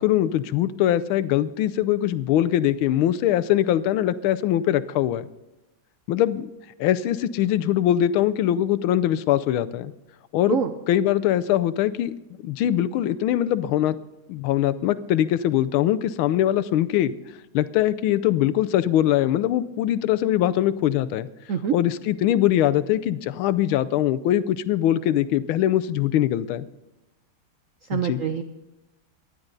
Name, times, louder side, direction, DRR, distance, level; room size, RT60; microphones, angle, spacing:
voice 1, 0.0-5.2 6.1-6.5 6.8-9.9 10.3-10.6 10.9-12.1 12.4-14.0 14.3-17.2 17.5-21.3 21.7-26.7 27.9-28.2, left 12 dB, 85° left, 14 dB, 1.5 m, -22 dB
voice 2, 27.9-28.4, right 8 dB, 90° right, 9 dB, 0.7 m, -24 dB
18.5 x 12.0 x 3.9 m, 0.98 s
omnidirectional pair, 2.3 m